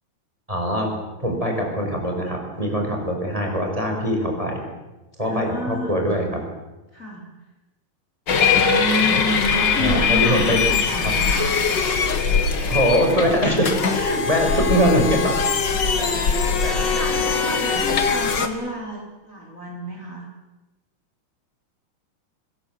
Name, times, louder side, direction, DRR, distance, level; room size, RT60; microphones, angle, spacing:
voice 1, 0.5-0.9 1.2-4.6 5.2-6.4 9.8-10.6 12.7-15.4 16.0-16.8, equal, 10° right, 1 dB, 5.2 m, -22 dB
voice 2, 5.2-6.0 6.9-7.3 8.4-11.5 14.4-15.0 16.1-20.2, equal, 25° left, -1 dB, 4.3 m, -30 dB
sound 1, 8.3-18.5, left 5 dB, 45° left, 1.8 m, -21 dB
25.0 x 21.0 x 7.8 m, 1.1 s
omnidirectional pair, 3.8 m